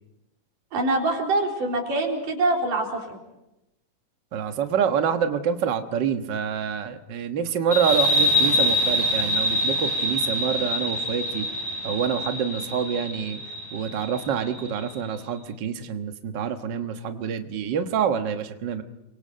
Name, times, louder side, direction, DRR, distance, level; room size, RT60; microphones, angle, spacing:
voice 1, 0.7-3.2, right 2 dB, 80° right, 0 dB, 5.5 m, -24 dB
voice 2, 4.3-11.5 11.8-13.4 13.7-18.8, right 7 dB, 50° right, 7 dB, 1.5 m, -27 dB
sound 1, 7.7-14.9, left 1 dB, 10° left, 6.6 m, -25 dB
29.0 x 24.0 x 5.7 m, 0.92 s
omnidirectional pair, 3.7 m